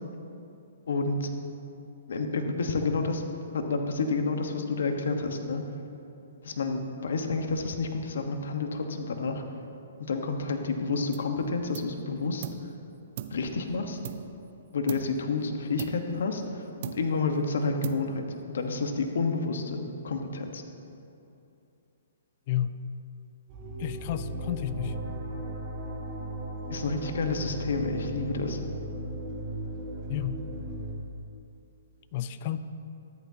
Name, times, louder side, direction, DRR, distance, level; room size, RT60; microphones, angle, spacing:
voice 1, 0.9-1.3 2.1-3.2 3.5-5.6 6.4-9.4 10.1-12.7 13.3-14.0 14.7-18.2 18.5-20.6 26.7-28.6, left 3 dB, 75° left, 5 dB, 1.2 m, -29 dB
sound 1, 11.1-11.4 11.7-12.7 13.2-14.5 14.9-15.3 15.8-16.5 16.8-17.3 17.8-18.4, right 10 dB, 45° right, 0.5 m, -41 dB
sound 2, 23.5-30.9, right 1 dB, 30° right, 1.5 m, -36 dB
voice 2, 23.8-25.0 30.1-30.4 32.1-32.6, left 11 dB, 40° left, 12 dB, 0.4 m, -31 dB
13.5 x 11.0 x 2.8 m, 2.8 s
hypercardioid pair, 155°, 0 cm